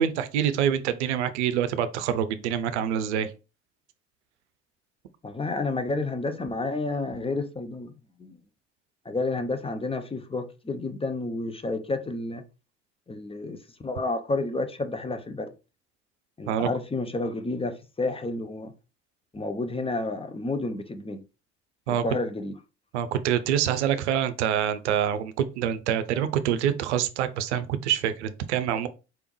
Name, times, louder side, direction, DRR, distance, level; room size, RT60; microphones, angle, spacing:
voice 1, 0.0-3.3 16.5-16.7 21.9-22.0 22.9-28.9, right 9 dB, 80° right, 0.6 m, -26 dB
voice 2, 5.2-7.9 8.2-8.4 9.0-12.4 13.1-15.5 16.4-18.7 19.3-21.2 21.9-22.5, left 2 dB, 15° left, 0.8 m, -30 dB
4.7 x 3.4 x 3.1 m
hypercardioid pair, 55°, 34 cm